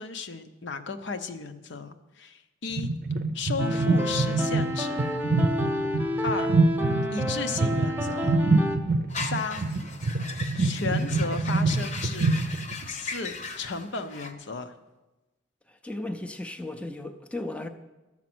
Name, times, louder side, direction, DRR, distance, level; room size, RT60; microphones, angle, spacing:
voice 1, 0.0-2.9 3.3-5.1 6.2-6.5 7.1-8.4 9.2-9.6 10.5-12.4 12.9-14.7, left 4 dB, 65° left, 8 dB, 0.7 m, -34 dB
sound 1, 2.7-12.9, right 3 dB, 55° right, 0.6 m, -26 dB
sound 2, 3.6-8.8, left 1 dB, 10° right, 0.9 m, -29 dB
sound 3, 9.1-14.3, left 3 dB, 40° left, 0.9 m, -38 dB
voice 2, 15.7-17.7, left 1 dB, 5° left, 5 dB, 0.5 m, -35 dB
12.5 x 7.3 x 6.1 m, 1.1 s
head